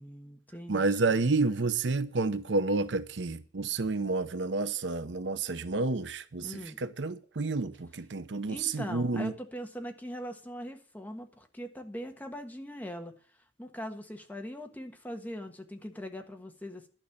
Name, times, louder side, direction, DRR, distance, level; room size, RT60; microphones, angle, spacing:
voice 1, 0.0-1.3 6.4-6.8 8.5-13.1 13.6-16.9, equal, 10° left, 1.4 m, -41 dB
voice 2, 0.7-9.3, right 3 dB, 85° right, 0.8 m, -30 dB
12.0 x 5.4 x 8.5 m
head